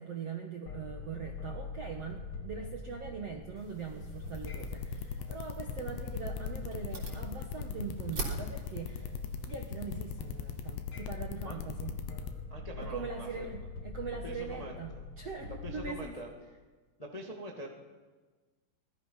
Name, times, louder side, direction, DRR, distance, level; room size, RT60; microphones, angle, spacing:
voice 1, 0.0-9.1 9.4-11.9 12.8-16.2, right 6 dB, 65° right, 3 dB, 1.6 m, -42 dB
sound 1, 0.7-15.9, left 3 dB, 45° left, 1.9 m, -43 dB
sound 2, 3.6-10.8, right 3 dB, 40° right, 4.5 m, -46 dB
sound 3, 4.3-12.3, left 9 dB, 85° left, 3.5 m, -39 dB
voice 2, 12.5-13.5 14.2-15.1 15.6-16.3 17.0-17.7, equal, 30° left, 0 dB, 0.7 m, -44 dB
24.5 x 19.5 x 5.8 m, 1.4 s
omnidirectional pair, 5.0 m